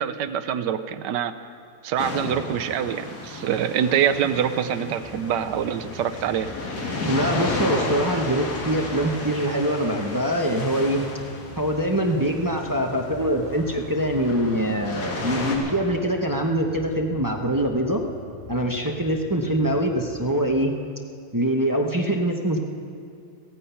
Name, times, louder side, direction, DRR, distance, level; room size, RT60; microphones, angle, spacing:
voice 1, 0.0-1.3 1.8-6.5, right 9 dB, 80° right, 10 dB, 1.3 m, -25 dB
sound 1, 2.0-15.6, left 2 dB, 65° left, 2.3 m, -33 dB
sound 2, 5.0-20.3, left 2 dB, 25° left, 3.4 m, -44 dB
voice 2, 7.1-11.0 11.6-18.0 18.5-20.7 21.3-22.6, right 1 dB, 20° right, 2 dB, 0.5 m, -24 dB
15.5 x 15.0 x 5.7 m, 2.3 s
omnidirectional pair, 1.9 m